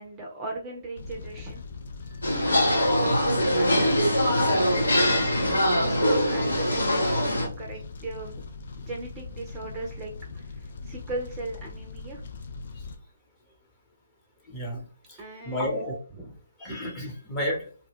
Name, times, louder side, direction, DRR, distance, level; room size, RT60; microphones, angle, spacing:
voice 1, 0.0-1.6 2.5-4.9 5.8-8.4 8.8-12.2 15.2-16.3, right 2 dB, 20° right, 0 dB, 0.6 m, -38 dB
Fire, 1.0-12.9, left 3 dB, 55° left, 0.5 m, -41 dB
sound 1, 2.2-7.5, equal, 80° left, 1.0 m, -23 dB
voice 2, 14.5-14.8 15.4-16.0 16.6-17.7, left 1 dB, 15° left, -2 dB, 0.9 m, -31 dB
2.2 x 2.2 x 3.5 m, 0.39 s
figure-of-eight pair, 140°, 0 cm